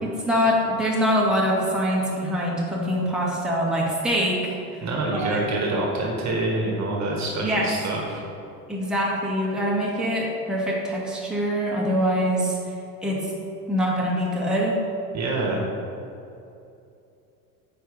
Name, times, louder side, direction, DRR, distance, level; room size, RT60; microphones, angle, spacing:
voice 1, 0.0-4.4 4.7-4.8 5.1-5.4 7.4-7.7 8.7-12.6 13.0-13.3 13.7-14.8, equal, ahead, -5 dB, 1.9 m, -24 dB
voice 2, 4.8-8.2 15.1-15.6, right 2 dB, 35° right, -1 dB, 1.7 m, -26 dB
7.7 x 5.0 x 5.3 m, 2.7 s
hypercardioid pair, 85°, 45 cm